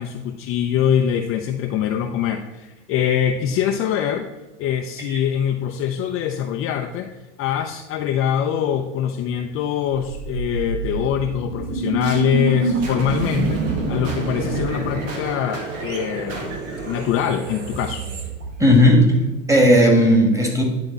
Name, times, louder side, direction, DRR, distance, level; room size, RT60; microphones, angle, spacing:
voice 1, 0.0-4.3 4.6-7.1 7.4-13.6 13.9-16.6 16.8-18.0, left 9 dB, 35° left, 5 dB, 0.5 m, -23 dB
sound 1, 9.9-19.0, right 3 dB, 80° right, 1.5 m, -27 dB
voice 2, 18.6-19.1 19.5-20.6, equal, 10° right, 1 dB, 1.7 m, -14 dB
9.9 x 3.5 x 3.9 m, 1.1 s
hypercardioid pair, 100°, 38 cm